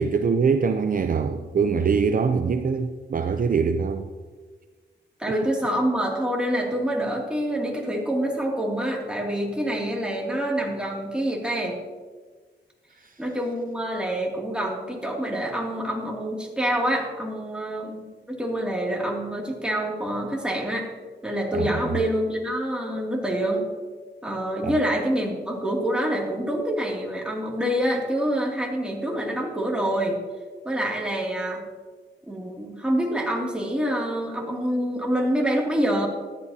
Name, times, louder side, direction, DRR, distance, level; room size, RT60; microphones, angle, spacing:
voice 1, 0.0-4.1 21.5-21.7 24.6-24.7, right 5 dB, 45° right, 0.5 m, -23 dB
voice 2, 5.2-11.8 13.2-20.9 21.2-23.7 24.2-30.2 30.6-31.6 32.3-36.1, equal, 5° right, 2.5 m, -26 dB
14.0 x 11.5 x 2.8 m
cardioid pair, 85°, 19 cm